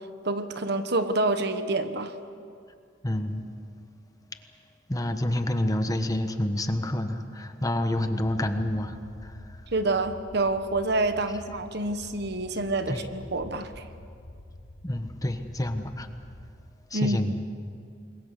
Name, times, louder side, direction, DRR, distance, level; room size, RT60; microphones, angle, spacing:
voice 1, 0.2-2.1 9.7-13.8 16.9-17.2, right 2 dB, 60° right, 9 dB, 1.3 m, -27 dB
voice 2, 3.0-3.5 4.9-9.0 9.2-9.4 12.9-13.0 14.8-16.1 16.9-17.3, left 1 dB, 20° left, 7 dB, 1.3 m, -28 dB
sound 1, 8.2-16.5, left 1 dB, 55° left, 1.4 m, -47 dB
28.0 x 22.5 x 6.7 m, 2.4 s
head